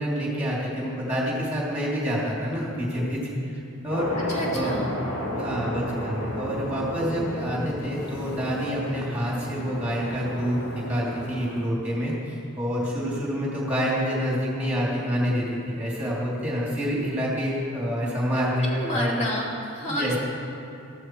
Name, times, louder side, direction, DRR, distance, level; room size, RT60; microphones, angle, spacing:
voice 1, 0.0-3.6 3.8-4.1 4.5-4.7 5.3-18.7 18.9-19.1 19.9-20.2, equal, 5° right, -4 dB, 2.7 m, -27 dB
sound 1, 3.9-11.7, equal, 90° left, 2.3 m, -32 dB
voice 2, 4.3-4.9 18.6-20.2, equal, 30° left, -4 dB, 2.4 m, -30 dB
14.0 x 12.5 x 4.6 m, 2.8 s
head